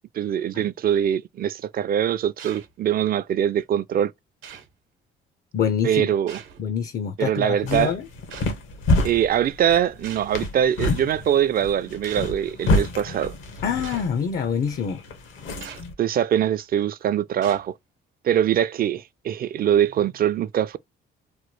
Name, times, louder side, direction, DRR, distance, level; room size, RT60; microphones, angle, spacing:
voice 1, 0.1-4.1 5.8-6.4 7.2-7.9 9.0-13.3 16.0-17.7 18.2-20.8, right 10 dB, 50° right, 0.4 m, -23 dB
sound 1, 2.4-2.7 3.6-3.7 4.4-4.7 6.3-6.7 8.3-8.5 10.0-10.4 11.2-11.4 12.0-12.4 13.0-13.1 13.8-14.1 15.6-15.9 16.6-16.8 17.4-17.7, right 7 dB, 80° right, 0.9 m, -42 dB
voice 2, 5.5-6.1 6.6-8.1 13.6-15.0, left 7 dB, 50° left, 0.5 m, -25 dB
sound 2, 7.4-15.9, left 2 dB, 80° left, 1.0 m, -28 dB
3.1 x 2.2 x 3.0 m
cardioid pair, 90°, 20 cm